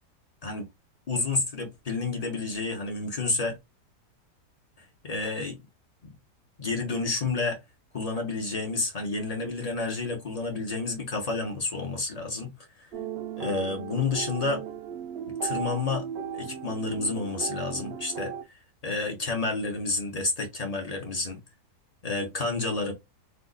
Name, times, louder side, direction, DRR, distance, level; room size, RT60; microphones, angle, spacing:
voice 1, 1.1-3.6 5.0-5.6 6.0-6.1 6.6-7.6 7.9-12.5 12.8-12.9 13.4-14.6 15.4-16.0 16.3-18.3 18.8-21.4 22.0-22.9, left 3 dB, 40° left, 0.6 m, -30 dB
sound 1, 12.9-18.4, right 8 dB, 75° right, 0.6 m, -36 dB
2.7 x 2.4 x 3.8 m
omnidirectional pair, 1.7 m